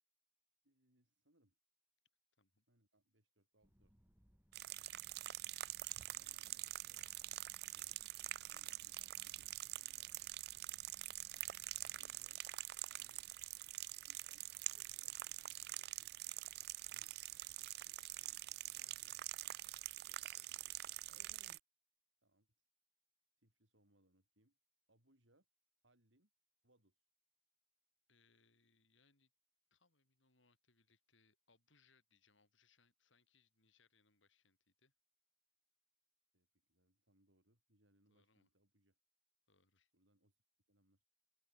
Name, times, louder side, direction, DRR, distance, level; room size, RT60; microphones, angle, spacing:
voice 1, 0.6-1.6 2.7-4.0 6.0-7.8 8.1-10.8 11.8-12.4 12.9-13.3 14.0-14.7 14.9-15.3 22.2-22.7 23.4-24.6 24.9-25.5 25.8-26.3 26.6-27.1 36.3-39.0 39.9-40.4 40.7-41.0, right 1 dB, 80° right, 7.9 m, -77 dB
sound 1, 3.6-12.2, equal, 10° right, 4.0 m, -72 dB
sound 2, 4.5-21.6, right 16 dB, 55° right, 0.4 m, -46 dB
voice 2, 17.5-19.4 19.8-21.1 28.1-29.3 29.7-34.9 38.1-38.5 39.5-39.9, left 4 dB, 80° left, 7.5 m, -76 dB
open air
head